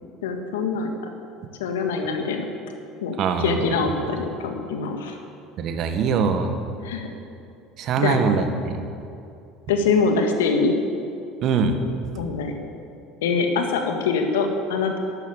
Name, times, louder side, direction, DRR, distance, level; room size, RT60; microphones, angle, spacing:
voice 1, 0.2-0.9 1.6-2.5 3.0-5.2 6.8-7.1 8.0-8.2 9.7-10.7 12.1-12.5 13.2-15.0, left 4 dB, 80° left, 4 dB, 1.8 m, -24 dB
voice 2, 3.2-3.6 5.6-6.5 7.8-8.8 11.4-11.8 12.0-12.1, right 5 dB, 55° right, 7 dB, 1.6 m, -22 dB
12.5 x 11.0 x 8.3 m, 2.6 s
hypercardioid pair, 70°, 0 cm